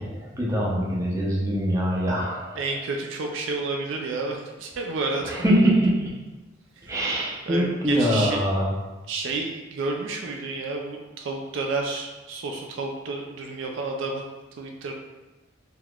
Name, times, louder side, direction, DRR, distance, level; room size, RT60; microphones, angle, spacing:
voice 1, 0.0-2.6 5.2-6.1 6.9-8.7, equal, 15° right, -5 dB, 0.6 m, -23 dB
voice 2, 2.6-5.3 6.8-7.0 7.5-8.4 9.1-14.2 14.6-14.9, right 3 dB, 65° right, 2 dB, 0.3 m, -30 dB
3.7 x 2.9 x 2.3 m, 1.2 s
head